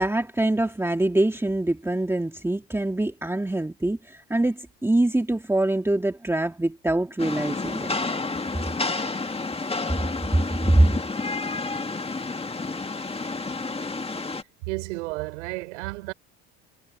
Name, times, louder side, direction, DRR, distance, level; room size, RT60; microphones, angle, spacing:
voice 1, 0.0-7.9 10.6-10.9, right 1 dB, 5° right, 2.1 m, -24 dB
Rain, 7.2-14.4, left 3 dB, 15° left, 1.9 m, -30 dB
voice 2, 14.6-16.1, right 24 dB, 85° right, 4.6 m, -32 dB
supercardioid pair, 80°, 35 cm